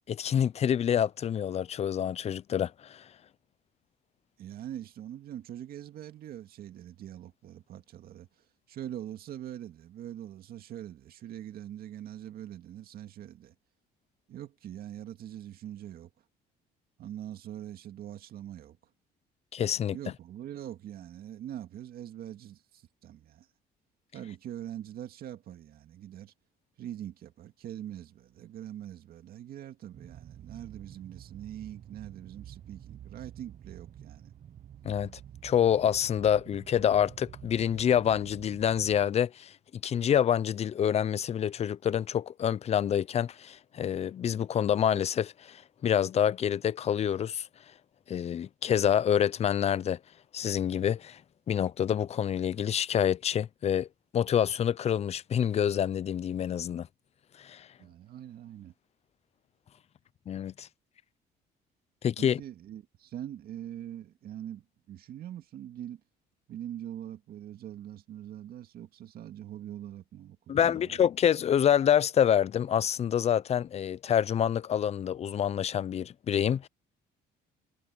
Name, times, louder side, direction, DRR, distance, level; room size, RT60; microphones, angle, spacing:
voice 1, 0.1-3.1 19.5-20.0 34.8-35.1 35.4-39.5 39.8-47.5 48.1-50.0 50.3-51.2 51.5-53.9 54.1-56.9 57.4-57.7 60.3-60.7 62.0-62.4 70.5-76.7, left 9 dB, 40° left, 0.5 m, -27 dB
voice 2, 4.4-8.3 8.7-13.5 14.3-16.1 17.0-18.8 19.9-23.5 24.1-26.3 26.8-34.3 57.8-58.7 62.2-66.0 66.5-71.0, right 11 dB, 65° right, 2.2 m, -43 dB
sound 1, 29.9-39.1, right 10 dB, 45° right, 1.0 m, -49 dB
cardioid pair, 110°, 17 cm